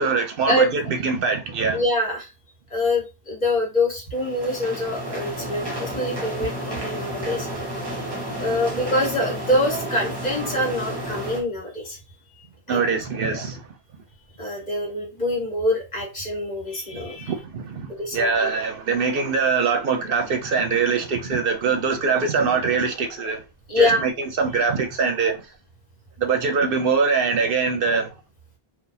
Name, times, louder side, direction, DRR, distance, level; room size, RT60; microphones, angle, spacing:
voice 1, 0.0-1.8 12.7-13.6 17.2-23.4 23.7-25.5 26.2-28.1, right 5 dB, 65° right, 0.8 m, -23 dB
voice 2, 1.7-2.3 2.7-7.5 8.4-12.0 12.7-12.8 13.3-13.4 14.4-17.3 18.0-18.5 23.7-24.0, left 1 dB, 45° left, 1.5 m, -25 dB
sound 1, 4.1-11.4, right 1 dB, 25° right, 0.9 m, -31 dB
2.6 x 2.4 x 3.9 m
omnidirectional pair, 1.0 m